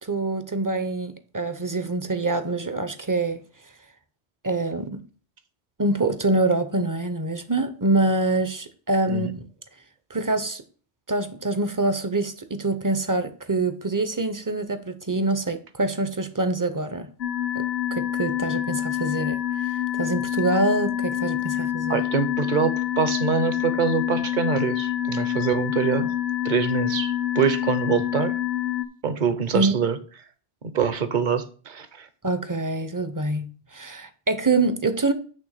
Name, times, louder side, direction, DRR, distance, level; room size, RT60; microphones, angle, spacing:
voice 1, 0.0-3.4 4.4-5.0 5.8-9.4 10.1-10.6 11.1-17.1 17.5-17.6 17.9-19.4 20.0-22.0 29.5-29.7 32.2-33.5 33.7-35.1, right 2 dB, 25° right, 0.5 m, -25 dB
sound 1, 17.2-28.8, left 11 dB, 65° left, 1.0 m, -27 dB
voice 2, 21.9-26.1 26.4-28.3 29.0-30.0 30.6-32.1, right 6 dB, 50° right, 0.9 m, -25 dB
8.7 x 3.4 x 6.5 m
omnidirectional pair, 1.1 m